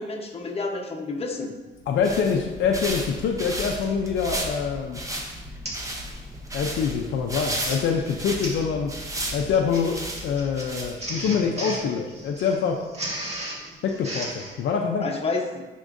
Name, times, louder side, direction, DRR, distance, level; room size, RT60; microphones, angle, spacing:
voice 1, 0.0-1.5 15.0-15.7, left 3 dB, 30° left, 2 dB, 1.0 m, -29 dB
sound 1, 1.8-11.3, right 1 dB, 15° right, 0.9 m, -34 dB
voice 2, 1.9-5.0 6.5-8.9 9.3-12.8 13.8-15.0, left 6 dB, 70° left, 2 dB, 0.6 m, -25 dB
Printer, 3.7-4.0 4.5-4.8 5.0-5.1 5.6-5.9 6.2-6.5 7.3-14.5, right 1 dB, 30° right, 1.6 m, -36 dB
9.7 x 3.7 x 2.6 m, 1.2 s
cardioid pair, 90°, 20 cm